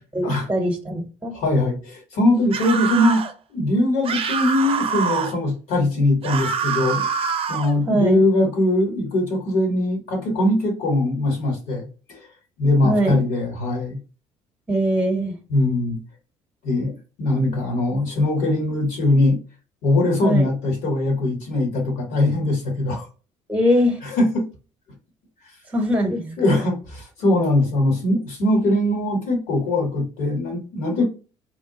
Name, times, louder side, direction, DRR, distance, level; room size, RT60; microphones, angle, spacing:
voice 1, 0.1-1.3 7.9-8.2 12.8-13.2 14.7-15.4 20.2-20.5 23.5-24.0 25.7-26.6, equal, 10° right, 1.0 m, -22 dB
voice 2, 1.3-3.2 3.5-7.1 7.5-12.3 12.6-14.0 15.5-16.0 16.6-19.4 19.8-23.1 24.0-24.5 26.4-31.0, left 1 dB, 70° left, 1.5 m, -21 dB
sound 1, 2.5-3.3 4.0-5.4 6.2-7.7, right 6 dB, 40° right, 0.5 m, -25 dB
3.5 x 2.2 x 2.9 m
hypercardioid pair, 60°, 15 cm